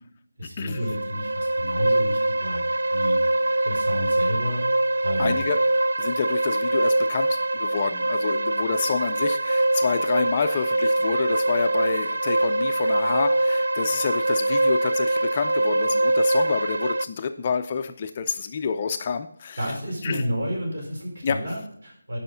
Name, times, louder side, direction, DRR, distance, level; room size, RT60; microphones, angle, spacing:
voice 1, 0.4-2.6 2.9-3.2 3.6-4.6 5.0-5.4 19.6-22.2, equal, 50° right, -1 dB, 4.8 m, -30 dB
sound 1, 0.7-17.0, right 1 dB, 70° right, 0.4 m, -23 dB
voice 2, 5.2-5.6 6.0-19.7 20.0-20.2 21.2-21.4, left 6 dB, 20° left, 7 dB, 0.3 m, -28 dB
11.0 x 5.5 x 5.5 m, 0.70 s
figure-of-eight pair, 175°, 0 cm